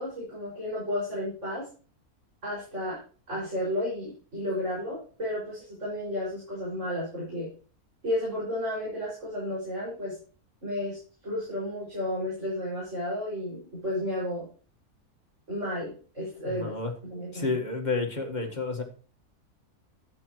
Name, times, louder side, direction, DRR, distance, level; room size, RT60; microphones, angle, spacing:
voice 1, 0.0-1.7 2.4-3.0 3.3-7.5 8.0-10.1 10.6-11.0 11.2-14.5 15.5-16.7 17.0-17.6, left 1 dB, 50° right, -7 dB, 6.3 m, -32 dB
voice 2, 16.5-16.9 17.3-18.8, left 4 dB, 30° left, 3 dB, 1.6 m, -30 dB
13.0 x 9.0 x 3.1 m, 0.39 s
omnidirectional pair, 1.6 m